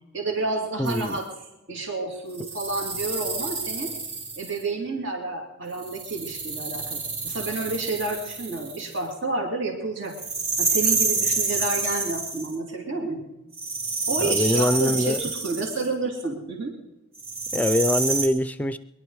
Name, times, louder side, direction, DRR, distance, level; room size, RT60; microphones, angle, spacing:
voice 1, 0.1-1.3 1.7-3.9 4.3-10.1 10.6-13.2 14.1-16.7, right 3 dB, 60° right, 1 dB, 2.7 m, -30 dB
voice 2, 0.8-1.2 14.2-15.2 17.5-18.8, left 1 dB, 10° left, 14 dB, 0.5 m, -23 dB
sound 1, 0.9-1.2 2.3-4.6 5.8-9.0 10.1-12.6 13.5-15.9 17.2-18.3, right 4 dB, 30° right, 2.7 m, -28 dB
22.5 x 11.5 x 4.8 m, 0.99 s
head